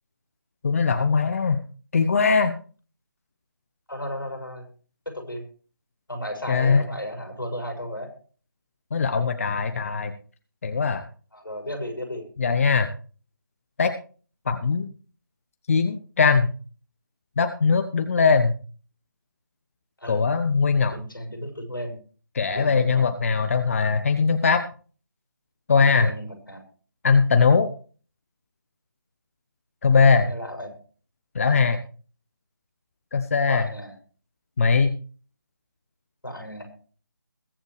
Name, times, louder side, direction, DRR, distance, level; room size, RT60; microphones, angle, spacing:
voice 1, 0.6-1.6 1.9-2.5 6.5-6.8 8.9-10.1 10.6-11.0 12.4-12.9 13.8-13.9 14.5-14.9 15.7-16.5 17.4-18.6 20.1-21.0 22.3-24.6 25.7-26.1 27.0-27.7 29.8-30.3 31.3-31.8 33.1-33.6 34.6-34.9, left 5 dB, 40° left, 8 dB, 1.1 m, -20 dB
voice 2, 3.9-4.7 5.0-5.4 6.1-8.1 11.3-12.2 20.0-20.2 20.9-22.0 22.5-23.1 26.0-26.6 30.2-30.7 33.5-33.9 36.2-36.7, equal, 85° left, 3 dB, 6.6 m, -34 dB
22.0 x 7.9 x 3.3 m, 0.40 s
figure-of-eight pair, 150°, 11 cm